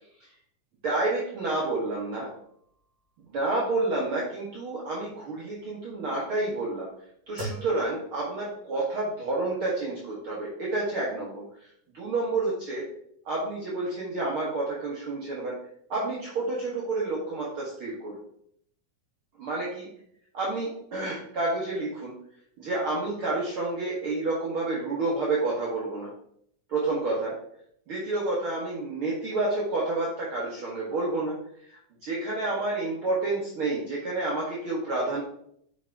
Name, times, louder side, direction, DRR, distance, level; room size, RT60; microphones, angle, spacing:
voice 1, 0.8-2.3 3.3-6.9 7.3-11.7 11.9-12.9 13.3-15.6 15.9-18.2 19.4-19.9 20.3-22.1 22.6-26.1 26.7-27.4 27.9-31.4 31.7-35.2, right 2 dB, 50° right, -5 dB, 1.8 m, -29 dB
sound 1, 2.1-8.8, right 1 dB, 35° right, 3.2 m, -45 dB
7.7 x 5.2 x 3.5 m, 0.68 s
omnidirectional pair, 3.7 m